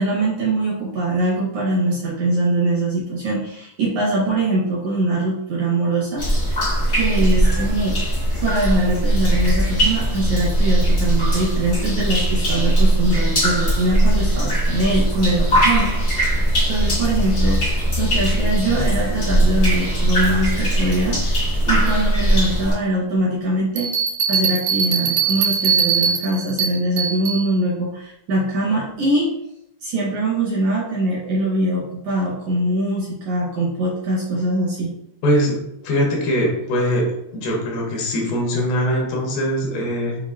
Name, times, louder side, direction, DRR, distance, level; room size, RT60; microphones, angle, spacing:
voice 1, 0.0-6.2 6.9-8.0 8.4-15.9 16.2-21.2 21.7-23.9 24.3-29.3 29.8-34.9, right 2 dB, 70° right, -6 dB, 1.8 m, -22 dB
sound 1, 6.2-22.7, right 1 dB, 55° left, 0.7 m, -19 dB
Bell, 23.8-27.4, right 7 dB, 90° right, 2.5 m, -21 dB
voice 2, 35.2-37.1 37.3-40.2, equal, 85° left, -1 dB, 2.8 m, -21 dB
6.8 x 2.7 x 2.3 m, 0.80 s
omnidirectional pair, 4.2 m